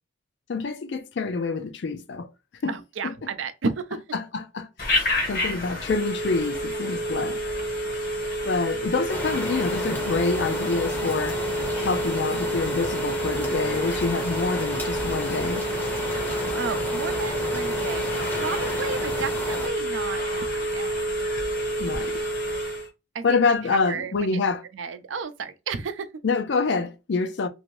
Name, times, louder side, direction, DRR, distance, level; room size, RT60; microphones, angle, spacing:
voice 1, 0.5-2.3 2.6-2.7 3.0-3.1 4.1-4.7 5.0-7.4 8.5-11.4 11.8-15.7 21.8-22.2 23.2-24.6 26.2-27.5, left 4 dB, 65° left, 0.4 m, -26 dB
voice 2, 2.7-4.0 16.6-21.1 23.1-23.4 23.7-24.1 24.7-26.1, right 5 dB, 85° right, 0.5 m, -32 dB
Telephone, 4.8-22.9, right 1 dB, 45° left, 0.8 m, -28 dB
sound 1, 9.1-19.7, left 1 dB, 10° left, 0.6 m, -33 dB
2.6 x 2.6 x 3.1 m
head